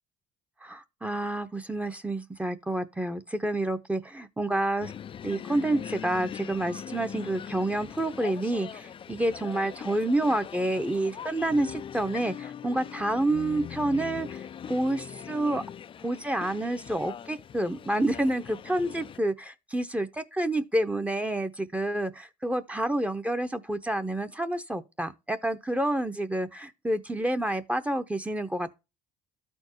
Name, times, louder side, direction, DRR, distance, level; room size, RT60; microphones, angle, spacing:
voice 1, 0.6-4.9 5.2-15.6 16.0-28.7, right 1 dB, 10° right, 0.8 m, -29 dB
sound 1, 4.8-19.2, left 8 dB, 30° left, 0.3 m, -41 dB
13.0 x 4.4 x 3.0 m
cardioid pair, 110°, 17 cm